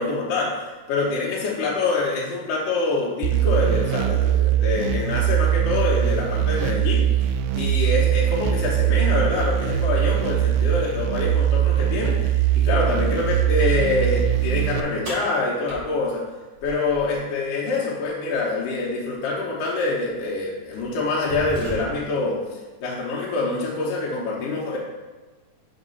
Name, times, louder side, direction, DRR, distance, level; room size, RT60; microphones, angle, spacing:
voice 1, 0.0-7.1 7.5-16.3 16.6-22.4 22.8-24.8, left 3 dB, 90° left, -4 dB, 2.7 m, -25 dB
sound 1, 3.2-14.8, right 11 dB, 80° right, 1.8 m, -21 dB
sound 2, 15.1-17.2 19.1-19.2 20.0-20.2 20.7-22.2, right 1 dB, 45° right, 2.4 m, -36 dB
7.2 x 4.1 x 5.5 m, 1.3 s
omnidirectional pair, 3.6 m